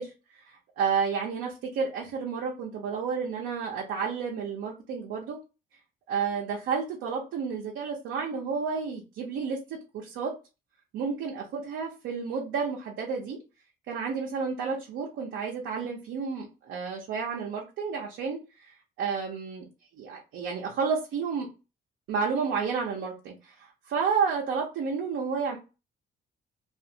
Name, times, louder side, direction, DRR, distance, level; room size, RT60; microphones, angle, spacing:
voice 1, 0.0-5.4 6.1-9.6 9.9-10.3 10.9-13.4 13.9-19.7 19.9-21.5 22.1-25.6, right 5 dB, 80° right, -2 dB, 0.8 m, -31 dB
2.5 x 2.4 x 2.8 m, 0.30 s
cardioid pair, 90°, 20 cm